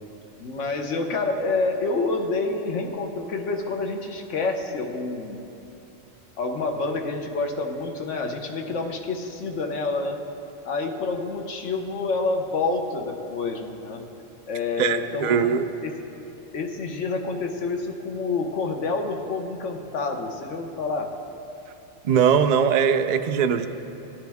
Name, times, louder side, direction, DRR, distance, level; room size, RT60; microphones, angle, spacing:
voice 1, 0.4-5.4 6.4-10.2 10.6-14.0 14.5-16.0 16.5-21.1, left 3 dB, 80° left, 3 dB, 1.2 m, -28 dB
voice 2, 14.8-15.7 22.0-23.7, right 7 dB, 65° right, 7 dB, 0.4 m, -21 dB
17.0 x 10.0 x 3.5 m, 2.8 s
omnidirectional pair, 1.2 m